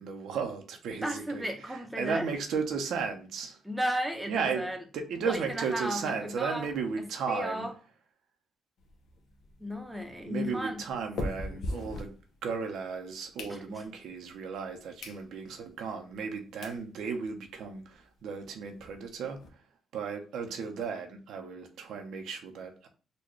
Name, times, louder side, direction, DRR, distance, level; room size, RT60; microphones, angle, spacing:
voice 1, 0.0-3.6 4.3-7.7 10.2-19.4 19.9-22.9, right 5 dB, 80° right, 0.7 m, -35 dB
voice 2, 1.0-2.3 3.7-4.8 5.2-6.7 7.0-7.7 9.6-10.8 13.5-13.8, equal, 5° right, 0.7 m, -34 dB
sound 1, 8.8-12.7 13.1-14.1 14.6-14.7 15.0-15.2 15.7-15.8 16.3-16.4 16.6-16.8 17.2-17.3 17.5-17.6 17.9-18.0 18.3-19.5, left 1 dB, 70° left, 0.7 m, -40 dB
4.0 x 2.3 x 3.0 m
cardioid pair, 90°, 0 cm